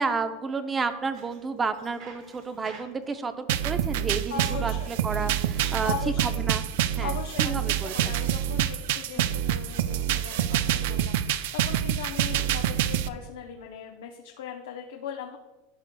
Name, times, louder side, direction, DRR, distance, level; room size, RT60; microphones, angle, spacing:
voice 1, 0.0-6.6 7.0-8.2 9.1-9.4, right 4 dB, 15° right, 10 dB, 0.5 m, -31 dB
Bicycle, 0.9-9.2, right 6 dB, 50° right, 1.1 m, -52 dB
sound 1, 3.5-13.1, right 11 dB, 70° right, 0.3 m, -27 dB
voice 2, 4.3-4.9 5.8-6.4 7.0-15.4, left 8 dB, 85° left, 3 dB, 0.6 m, -39 dB
12.0 x 6.1 x 2.2 m, 1.1 s
supercardioid pair, 135°, 0 cm